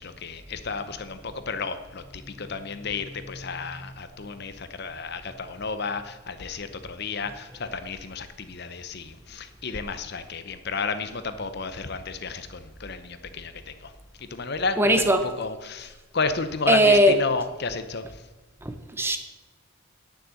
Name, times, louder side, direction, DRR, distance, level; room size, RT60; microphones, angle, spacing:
voice 1, 0.0-13.9 14.2-15.1 15.4-18.0, left 4 dB, 50° left, 10 dB, 0.8 m, -32 dB
voice 2, 14.8-15.3 16.7-17.2 18.6-19.2, right 1 dB, 10° right, 8 dB, 0.7 m, -19 dB
10.0 x 6.4 x 7.7 m, 1.2 s
head